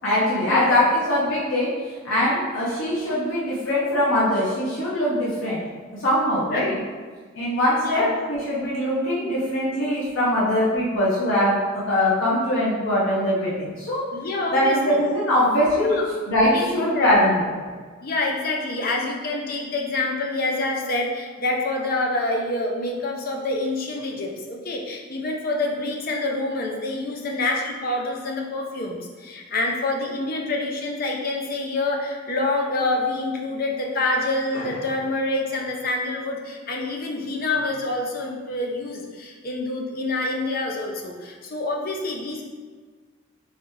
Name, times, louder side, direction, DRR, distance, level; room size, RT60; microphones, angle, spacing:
voice 1, 0.0-1.7 2.0-5.6 6.0-6.8 7.4-14.0 14.5-16.0 16.3-17.4, left 1 dB, 80° left, -8 dB, 0.9 m, -22 dB
voice 2, 7.8-8.2 14.1-15.0 15.9-16.1 16.5-17.3 18.0-42.4, left 2 dB, 45° left, 0 dB, 0.6 m, -27 dB
3.9 x 3.3 x 3.2 m, 1.5 s
head